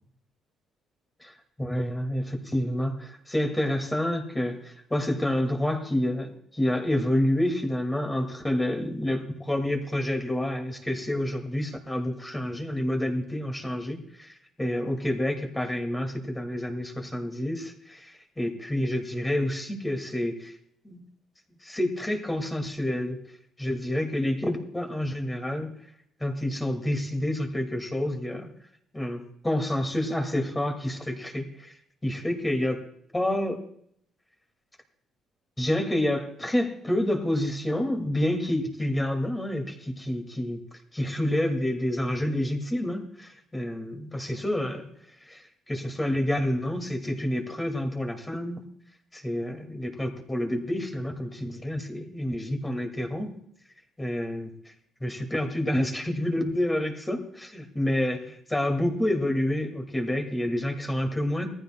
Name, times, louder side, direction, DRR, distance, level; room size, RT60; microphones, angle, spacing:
voice 1, 1.2-20.6 20.8-21.0 21.6-23.2 23.6-25.7 26.2-28.5 28.9-32.8 33.1-33.6 35.6-40.6 40.9-44.9 45.2-48.6 49.1-53.3 54.0-54.5 55.0-61.5, left 1 dB, 10° left, 3 dB, 2.1 m, -28 dB
19.0 x 14.5 x 2.2 m, 0.69 s
cardioid pair, 100°, 0 cm